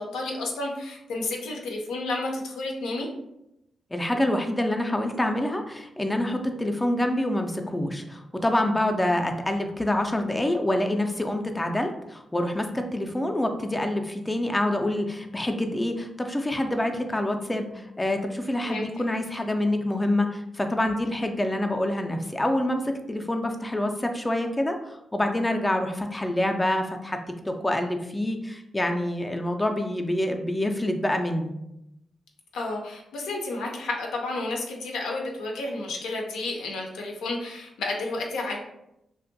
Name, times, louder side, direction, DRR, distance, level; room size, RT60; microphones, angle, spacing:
voice 1, 0.0-3.1 18.6-18.9 32.5-38.6, left 2 dB, 90° left, 0 dB, 0.4 m, -31 dB
voice 2, 3.9-27.2 27.5-31.5, left 1 dB, 15° left, 4 dB, 0.3 m, -26 dB
2.5 x 2.1 x 2.5 m, 0.84 s
cardioid pair, 60°, 0 cm